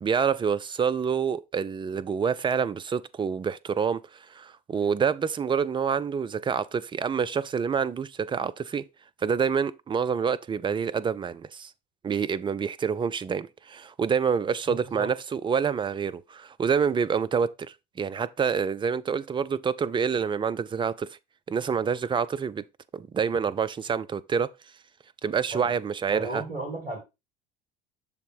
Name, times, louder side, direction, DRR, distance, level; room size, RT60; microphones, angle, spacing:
voice 1, 0.0-8.8 9.2-11.7 12.0-17.5 18.0-21.2 21.5-22.6 22.9-24.5 25.2-26.4, right 6 dB, 15° right, 0.4 m, -27 dB
voice 2, 14.7-15.1 25.5-25.7 26.1-27.0, right 2 dB, 80° right, 2.1 m, -34 dB
6.8 x 3.6 x 4.5 m
figure-of-eight pair, 65°, 29 cm